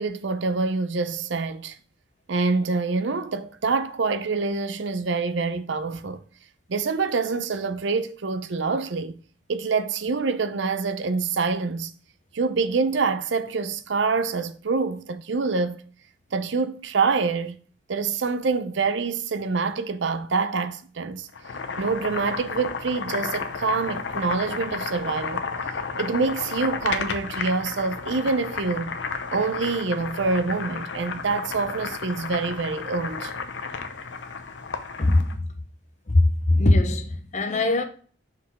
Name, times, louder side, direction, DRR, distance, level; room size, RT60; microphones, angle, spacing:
voice 1, 0.0-1.8 2.3-6.2 6.7-9.2 9.5-11.9 12.3-15.9 16.3-17.6 17.9-21.3 21.8-25.4 26.0-29.0 29.3-33.3, right 4 dB, 70° right, 0.6 m, -26 dB
Boiling, 21.3-35.4, left 5 dB, 70° left, 0.7 m, -32 dB
voice 2, 36.1-37.8, left 2 dB, 35° left, 0.6 m, -20 dB
5.8 x 4.8 x 3.5 m
head